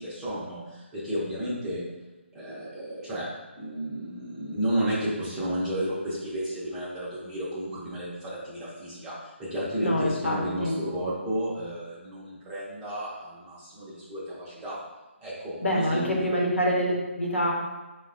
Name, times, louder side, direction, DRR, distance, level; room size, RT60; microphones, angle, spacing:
voice 1, 0.0-1.8 2.3-3.3 3.6-14.8 15.2-16.4, right 1 dB, 10° right, -8 dB, 0.6 m, -32 dB
voice 2, 9.8-10.8 15.6-17.5, equal, 70° left, -2 dB, 0.8 m, -26 dB
4.6 x 2.2 x 2.5 m, 1.1 s
figure-of-eight pair, 145°, 7 cm